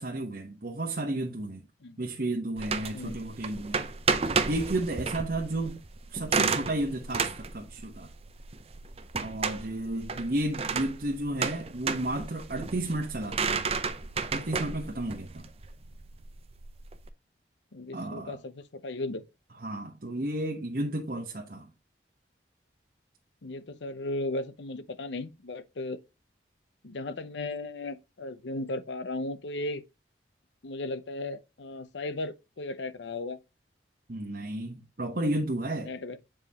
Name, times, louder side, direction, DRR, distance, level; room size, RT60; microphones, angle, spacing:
voice 1, 0.0-1.6 2.0-3.8 4.5-5.8 6.1-8.1 9.2-13.6 14.3-15.5 17.9-18.4 19.6-21.7 34.1-35.9, right 1 dB, 50° right, 1.0 m, -32 dB
sound 1, 2.6-17.1, right 5 dB, 30° right, 0.6 m, -32 dB
voice 2, 17.7-19.2 23.4-26.0 26.8-29.8 30.6-33.4 35.3-35.5 35.9-36.2, left 2 dB, 70° left, 0.7 m, -36 dB
7.4 x 5.0 x 2.9 m
head